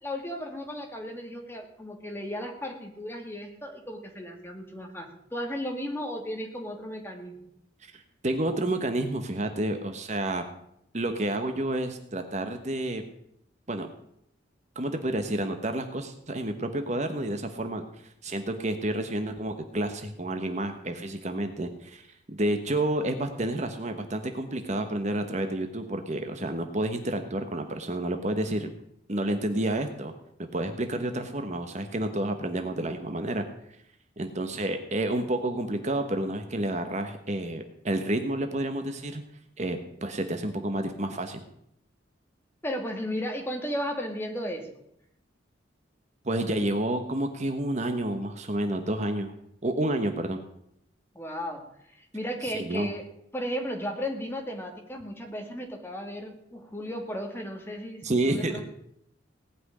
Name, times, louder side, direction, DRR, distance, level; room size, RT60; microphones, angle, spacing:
voice 1, 0.0-7.5 42.6-44.7 51.1-51.7 51.9-53.0 53.3-58.6, equal, 10° left, 3 dB, 2.2 m, -35 dB
voice 2, 7.8-10.4 10.9-13.0 13.7-13.9 14.7-17.9 18.2-28.7 29.1-30.1 30.5-33.4 34.2-39.2 39.6-41.4 46.2-49.3 49.6-50.4 52.4-52.9 58.0-58.6, right 1 dB, 35° right, 6 dB, 1.2 m, -30 dB
18.5 x 6.1 x 9.8 m, 0.74 s
head